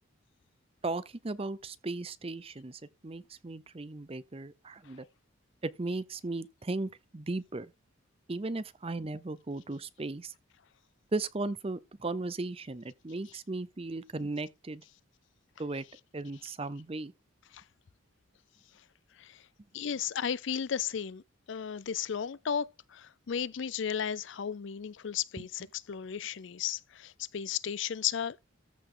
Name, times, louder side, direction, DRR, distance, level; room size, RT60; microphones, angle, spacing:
voice 1, 0.8-5.1 5.6-7.7 8.3-10.3 11.1-14.8 15.6-15.8 16.1-17.1 25.4-25.5, right 2 dB, 25° right, 0.6 m, -36 dB
voice 2, 19.7-21.2 21.5-28.4, left 8 dB, 60° left, 0.4 m, -34 dB
14.0 x 5.1 x 3.8 m
head